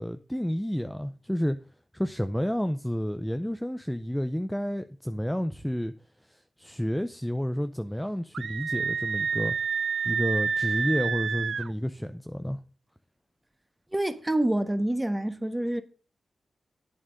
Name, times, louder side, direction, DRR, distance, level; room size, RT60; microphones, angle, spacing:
voice 1, 0.0-1.6 1.9-5.9 6.3-9.6 10.0-12.6, equal, 5° left, 0.5 m, -30 dB
Screaming, 8.3-11.7, right 6 dB, 80° right, 0.4 m, -29 dB
voice 2, 13.9-15.8, right 1 dB, 15° right, 1.2 m, -27 dB
8.7 x 7.4 x 5.1 m
cardioid pair, 65°, 0 cm